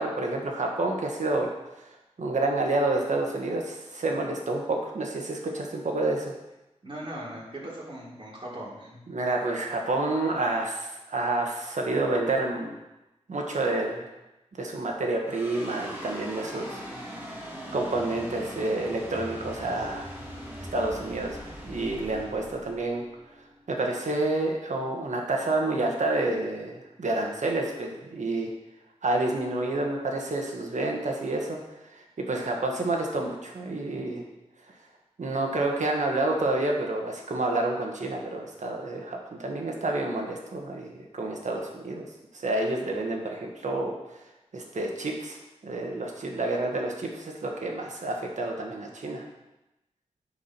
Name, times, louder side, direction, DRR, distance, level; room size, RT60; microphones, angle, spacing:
voice 1, 0.0-1.5 1.9-6.3 9.1-12.8 13.3-14.1 14.6-17.3 17.7-20.0 20.7-23.1 23.7-28.5 29.0-31.6 31.9-34.2 35.2-42.0 42.3-43.9 44.5-45.4 45.6-49.2, right 2 dB, 85° right, 1 dB, 1.5 m, -29 dB
voice 2, 6.8-9.0, right 1 dB, 45° right, -5 dB, 3.5 m, -39 dB
sound 1, 15.3-23.8, equal, 20° right, 2.4 m, -41 dB
9.5 x 4.9 x 6.1 m, 0.97 s
wide cardioid pair, 60°, 12 cm